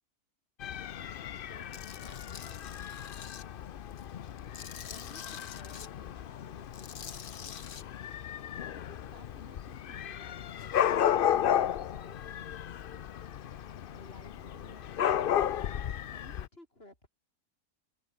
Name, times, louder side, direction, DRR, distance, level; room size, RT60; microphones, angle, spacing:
Dog / Cat, 0.6-16.5, left 10 dB, 60° left, 0.6 m, -34 dB
voice 1, 0.9-2.8 4.8-7.8 8.8-12.6 13.9-15.5 16.1-17.1, left 1 dB, 40° left, 7.8 m, -56 dB
Tools, 1.7-3.4 3.9-5.9 6.6-7.8, left 8 dB, 80° left, 1.8 m, -46 dB
omnidirectional pair, 1.6 m